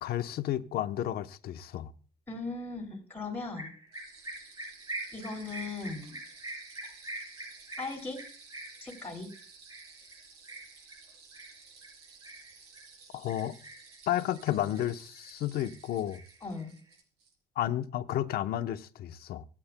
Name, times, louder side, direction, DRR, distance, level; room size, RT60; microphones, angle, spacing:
voice 1, 0.0-1.9 13.1-13.6 14.1-16.2 17.6-19.4, left 12 dB, 65° left, 0.9 m, -32 dB
voice 2, 2.3-3.7 5.1-6.2 7.8-8.2 8.8-9.3 16.4-16.8, left 3 dB, 10° left, 2.8 m, -38 dB
sound 1, 3.6-12.9 13.3-14.0 14.4-15.3 15.5-16.9, right 2 dB, 20° right, 6.8 m, -44 dB
sound 2, 3.9-17.3, right 5 dB, 75° right, 4.8 m, -55 dB
25.0 x 8.6 x 2.2 m
cardioid pair, 110°, 17 cm